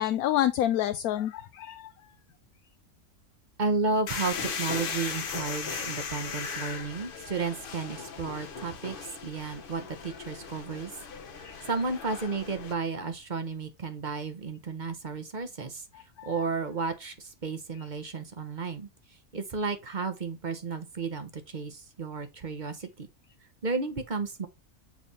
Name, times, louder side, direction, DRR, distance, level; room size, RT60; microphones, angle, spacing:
voice 1, 0.0-1.9 11.4-11.6 16.2-16.3, left 12 dB, 80° left, 1.1 m, -28 dB
voice 2, 3.6-10.9 11.7-15.9 16.2-18.9 19.3-23.1 23.6-24.5, right 4 dB, 35° right, 0.9 m, -33 dB
sound 1, 4.1-12.7, left 6 dB, 45° left, 0.9 m, -37 dB
7.3 x 3.4 x 4.1 m
omnidirectional pair, 1.6 m